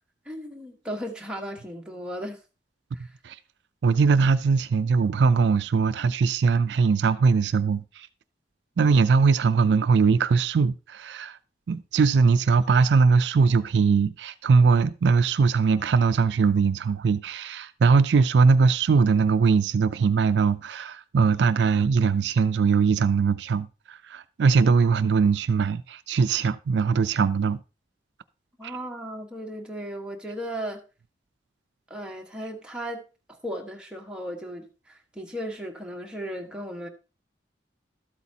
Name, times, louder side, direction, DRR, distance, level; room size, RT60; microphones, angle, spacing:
voice 1, 0.2-2.4 2.9-3.1 28.6-30.8 31.9-33.0 33.3-36.9, equal, 5° right, 1.3 m, -36 dB
voice 2, 3.8-8.1 8.8-11.4 11.7-27.6 28.6-28.8, right 5 dB, 75° right, 0.4 m, -21 dB
12.5 x 8.2 x 2.8 m
head